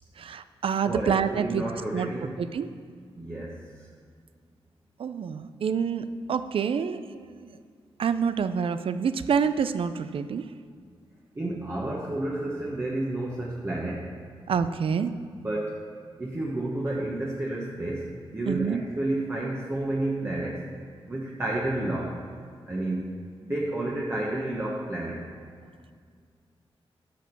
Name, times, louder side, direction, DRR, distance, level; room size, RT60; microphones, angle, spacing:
voice 1, 0.2-1.6 1.9-2.1 2.4-2.7 5.0-7.6 8.0-10.5 14.5-15.1 18.5-18.8, right 6 dB, 70° right, 12 dB, 0.4 m, -27 dB
voice 2, 0.9-2.3 3.1-3.9 11.3-14.1 15.3-15.8 16.2-20.7 21.1-22.3 22.7-25.2, right 1 dB, 25° right, -4 dB, 1.2 m, -31 dB
10.0 x 5.1 x 6.7 m, 2.1 s
wide cardioid pair, 95°, 10 cm